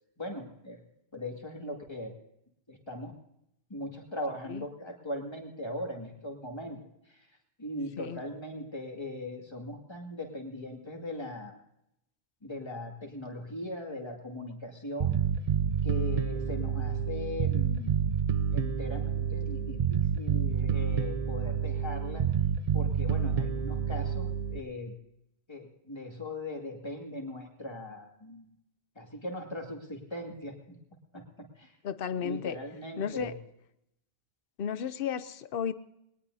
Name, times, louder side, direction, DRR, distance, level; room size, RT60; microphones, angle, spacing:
voice 1, 0.2-0.8 1.1-2.1 2.7-3.1 3.7-6.8 7.1-7.3 7.6-11.5 12.4-15.2 15.8-18.1 18.5-22.2 22.7-24.9 25.5-28.5 29.0-30.6 31.1-31.7 32.2-33.3, left 1 dB, 25° left, 1 dB, 2.3 m, -39 dB
Bass guitar, 15.0-24.6, right 7 dB, 40° right, 0.7 m, -29 dB
voice 2, 31.8-32.6 33.0-33.3 34.6-35.7, left 8 dB, 60° left, 14 dB, 0.9 m, -33 dB
21.5 x 18.5 x 2.8 m, 0.81 s
omnidirectional pair, 1.1 m